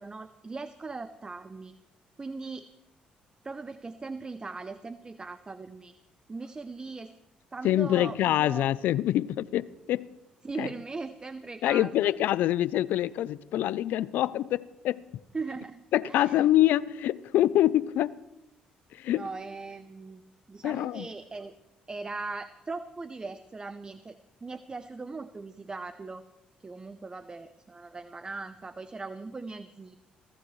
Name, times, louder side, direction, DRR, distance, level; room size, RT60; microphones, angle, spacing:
voice 1, 0.0-1.7 2.2-2.7 3.4-5.9 6.3-7.1 7.5-8.7 10.4-12.3 15.3-16.5 19.1-20.2 20.5-21.6 21.9-26.3 26.6-29.9, right 3 dB, 25° right, 0.7 m, -39 dB
voice 2, 7.6-10.1 10.6-10.7 11.6-15.0 15.9-18.2 18.9-19.2 20.6-21.1, left 13 dB, 75° left, 0.5 m, -25 dB
24.0 x 15.5 x 3.2 m
supercardioid pair, 75°, 3 cm